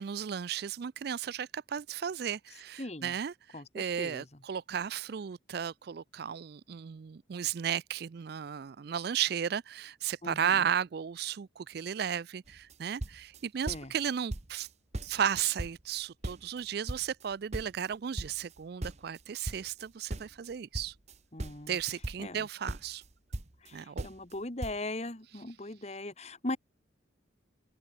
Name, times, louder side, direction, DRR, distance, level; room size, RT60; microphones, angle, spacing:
voice 1, 0.0-14.7 15.0-20.9 21.7-23.0 23.7-24.0, right 8 dB, 55° right, 0.4 m, -34 dB
voice 2, 2.8-3.1 3.5-4.3 10.2-10.6 13.7-13.9 21.3-21.8 22.2-22.5 23.6-26.6, left 2 dB, 35° left, 1.8 m, -39 dB
sound 1, 12.5-12.7 13.0-14.0 14.3-14.7 14.9-16.6 16.9-19.8 20.1-22.4 22.7-23.7 24.0-24.4 24.6-24.8, right 1 dB, 35° right, 1.1 m, -39 dB
open air
head